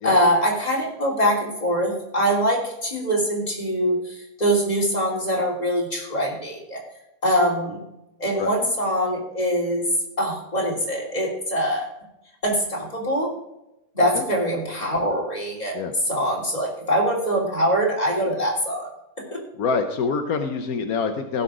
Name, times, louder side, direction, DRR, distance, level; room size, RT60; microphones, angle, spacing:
voice 1, 0.0-6.8 7.2-7.8 8.2-9.8 10.2-11.9 12.4-13.3 13.9-15.8 16.1-18.9 19.3-19.4, equal, 25° left, -3 dB, 3.1 m, -23 dB
voice 2, 19.5-21.4, left 5 dB, 80° left, 6 dB, 1.4 m, -25 dB
15.5 x 5.8 x 4.9 m, 0.87 s
omnidirectional pair, 1.5 m